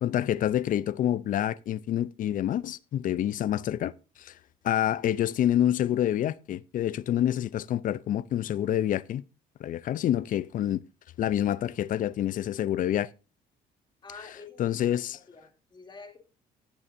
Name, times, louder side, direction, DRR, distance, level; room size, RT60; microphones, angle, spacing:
voice 1, 0.0-3.9 4.2-4.3 4.6-9.2 9.6-10.8 11.2-13.1 14.6-15.2, left 11 dB, 55° left, 0.5 m, -27 dB
voice 2, 14.0-14.8 15.1-16.2, left 4 dB, 25° left, 2.8 m, -47 dB
18.0 x 7.0 x 2.6 m
cardioid pair, 110°, 17 cm